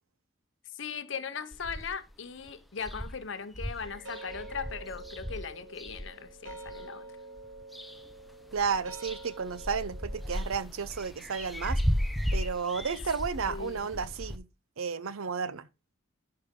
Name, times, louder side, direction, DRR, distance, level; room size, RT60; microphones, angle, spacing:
voice 1, 0.7-7.1 13.5-13.9, left 6 dB, 65° left, 0.7 m, -39 dB
sound 1, 1.5-2.1 2.5-2.6 2.8-6.8 7.4-8.2 8.5-14.4, equal, ahead, 0.5 m, -35 dB
sound 2, 3.8-10.4, right 2 dB, 65° right, 1.4 m, -47 dB
voice 2, 8.5-11.8 12.3-14.5 14.8-15.7, right 6 dB, 90° right, 0.7 m, -32 dB
11.5 x 5.0 x 3.7 m
head